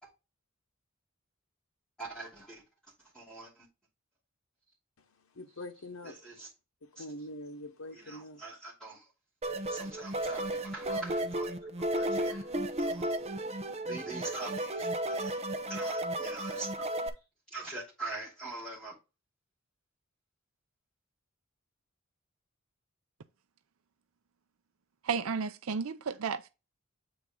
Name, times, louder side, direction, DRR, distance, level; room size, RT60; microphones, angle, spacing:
voice 1, 2.0-2.6 3.0-3.7 6.0-6.5 6.9-7.1 7.9-9.1 9.7-13.3 13.8-16.7 17.5-18.9, right 3 dB, 5° left, 2.9 m, -44 dB
voice 2, 5.0-6.2 7.0-8.4, left 1 dB, 90° left, 1.0 m, -44 dB
sound 1, 9.4-17.1, right 1 dB, 30° right, 0.8 m, -34 dB
voice 3, 25.0-26.5, right 5 dB, 85° right, 0.5 m, -33 dB
8.1 x 4.3 x 3.7 m
head